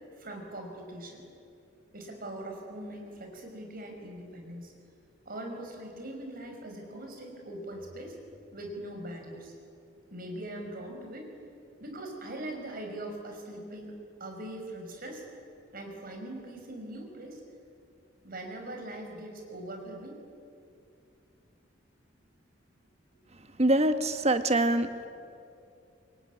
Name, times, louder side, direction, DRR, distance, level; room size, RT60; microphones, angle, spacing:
voice 1, 0.2-1.2 1.9-4.7 5.3-8.2 8.5-9.5 10.1-11.3 11.8-13.9 14.2-15.2 15.7-17.4 18.2-20.2, right 1 dB, 50° right, 3 dB, 5.6 m, -41 dB
voice 2, 23.6-24.9, right 1 dB, 35° right, 9 dB, 1.4 m, -24 dB
26.0 x 21.5 x 9.7 m, 2.6 s
head